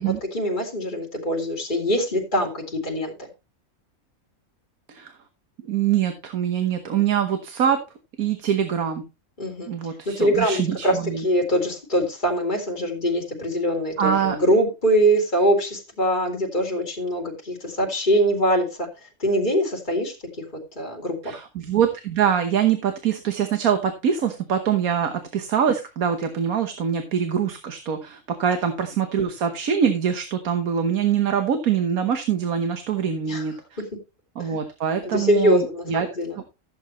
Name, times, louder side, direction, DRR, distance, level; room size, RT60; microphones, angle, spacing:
voice 1, 0.0-3.1 9.4-9.7 10.2-18.9 19.2-20.4 20.8-21.4 33.3-33.4 34.4-34.5 35.0-36.4, equal, 35° left, -1 dB, 3.0 m, -23 dB
voice 2, 5.7-7.8 8.2-9.1 9.7-11.2 14.0-14.4 21.2-33.5 34.4-36.1, right 8 dB, 85° right, 7 dB, 1.6 m, -24 dB
15.0 x 8.0 x 3.0 m, 0.27 s
omnidirectional pair, 1.5 m